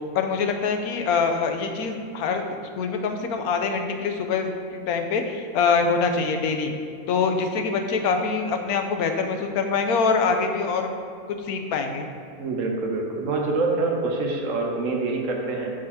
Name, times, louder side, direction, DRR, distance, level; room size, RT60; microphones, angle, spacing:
voice 1, 0.1-2.4 2.8-6.7 7.1-10.9 11.4-12.1, left 5 dB, 85° left, 5 dB, 1.1 m, -24 dB
voice 2, 12.4-15.7, right 3 dB, 65° right, 0 dB, 1.1 m, -26 dB
6.3 x 5.0 x 4.2 m, 2.4 s
omnidirectional pair, 1.6 m